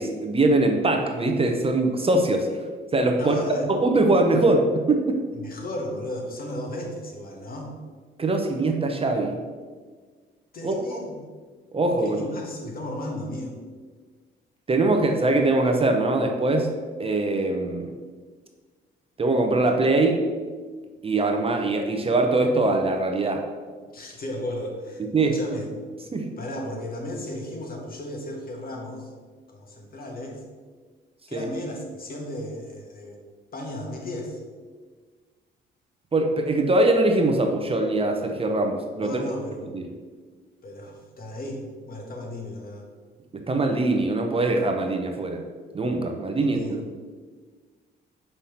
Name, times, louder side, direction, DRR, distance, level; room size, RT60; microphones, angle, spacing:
voice 1, 0.0-2.6 2.9-3.3 3.7-5.2 8.2-9.4 10.6-10.8 11.7-12.2 14.7-16.7 17.0-17.9 19.2-20.3 21.0-23.4 25.0-25.4 26.1-26.3 31.3-31.4 36.1-39.2 39.7-39.8 43.3-45.4 45.7-46.9, right 2 dB, 30° right, 3 dB, 0.8 m, -22 dB
voice 2, 3.1-3.7 5.3-7.7 10.5-11.2 12.0-13.6 23.9-25.7 26.4-29.1 29.5-30.4 31.3-33.2 33.5-34.4 39.0-39.7 40.6-42.9 46.4-46.8, left 1 dB, 45° left, 0 dB, 1.4 m, -34 dB
5.6 x 3.4 x 5.7 m, 1.5 s
cardioid pair, 90°, 20 cm